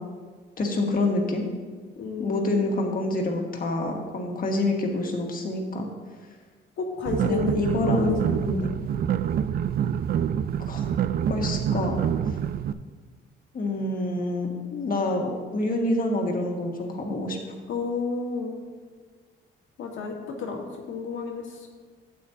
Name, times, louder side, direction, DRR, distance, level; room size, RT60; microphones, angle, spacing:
voice 1, 0.6-1.4 2.2-5.9 7.2-8.2 10.6-10.8 11.3-12.4 13.5-17.4, left 2 dB, 45° left, 1 dB, 1.6 m, -27 dB
voice 2, 2.0-2.7 6.8-8.7 17.7-18.6 19.8-21.4, left 3 dB, 80° left, 1 dB, 1.6 m, -30 dB
sound 1, 7.1-12.7, right 9 dB, 50° right, 0.4 m, -26 dB
12.0 x 8.4 x 2.8 m, 1.5 s
cardioid pair, 90°, 20 cm